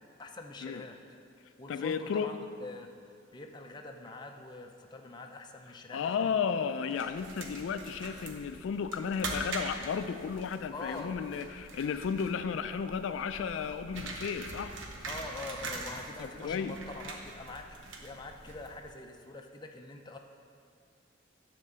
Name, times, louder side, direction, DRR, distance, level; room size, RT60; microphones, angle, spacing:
voice 1, 0.2-1.0 1.6-2.4 2.6-2.9 3.3-6.4 10.7-11.2 15.0-20.2, left 2 dB, 20° left, 3 dB, 0.5 m, -44 dB
voice 2, 1.7-2.3 5.9-14.7 16.2-16.7, left 6 dB, 75° left, 10 dB, 0.3 m, -33 dB
sound 1, 6.9-19.0, right 2 dB, 80° right, 1.0 m, -43 dB
9.9 x 3.7 x 6.7 m, 2.3 s
head